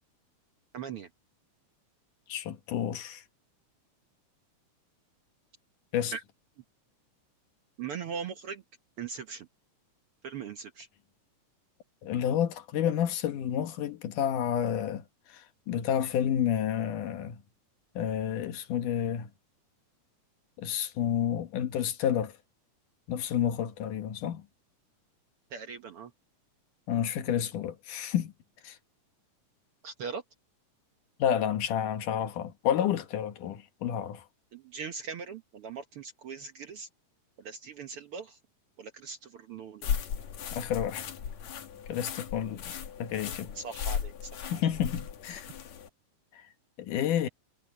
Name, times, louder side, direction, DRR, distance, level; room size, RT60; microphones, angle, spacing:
voice 1, 0.7-1.1 6.1-6.2 7.8-8.6 9.0-9.5 10.2-10.9 25.5-26.1 29.8-30.2 34.5-36.9 37.4-38.4 38.8-40.0 43.5-44.6, right 6 dB, 60° right, 1.5 m, -40 dB
voice 2, 2.3-3.2 5.9-6.1 12.0-17.4 18.0-19.3 20.6-22.3 23.1-24.4 26.9-28.3 28.6-28.8 31.2-34.2 40.6-41.1 41.9-42.7 43.0-43.6 44.5-45.5 46.3-46.4 46.8-47.3, left 9 dB, 80° left, 2.9 m, -30 dB
sound 1, 39.8-45.9, left 8 dB, 60° left, 2.8 m, -36 dB
omnidirectional pair, 3.7 m